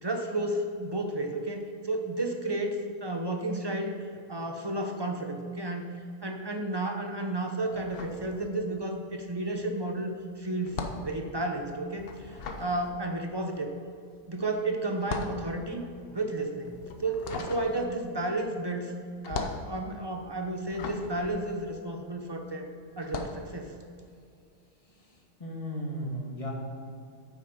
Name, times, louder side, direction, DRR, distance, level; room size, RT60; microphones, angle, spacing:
voice 1, 0.0-3.9 4.3-6.0 6.2-13.7 14.3-15.8 16.1-16.7 17.0-18.9 19.2-22.7 23.0-23.7, right 2 dB, 25° right, 4 dB, 0.7 m, -32 dB
sound 1, 7.7-9.0 9.2-22.4 22.9-23.5, left 4 dB, 50° left, 0.9 m, -40 dB
voice 2, 24.8-26.5, equal, 25° left, -2 dB, 1.7 m, -36 dB
9.1 x 7.0 x 5.1 m, 2.4 s
omnidirectional pair, 1.4 m